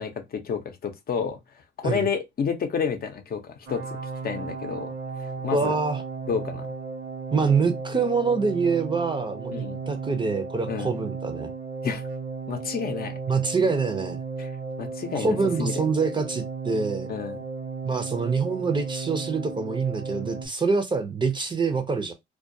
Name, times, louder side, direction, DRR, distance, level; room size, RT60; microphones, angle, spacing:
voice 1, 0.0-1.4 1.8-4.0 4.2-4.9 5.4-5.7 6.3-6.6 9.5-9.8 10.7-10.9 11.8-12.0 12.5-13.2 14.4-14.5 14.8-15.7 17.1-17.4, left 6 dB, 50° left, 0.6 m, -30 dB
sound 1, 3.7-20.5, right 4 dB, 65° right, 0.8 m, -35 dB
voice 2, 5.5-6.0 7.3-11.5 13.3-14.2 15.1-17.1 17.8-22.1, right 4 dB, 25° right, 0.5 m, -25 dB
2.3 x 2.2 x 2.6 m
cardioid pair, 90°, 20 cm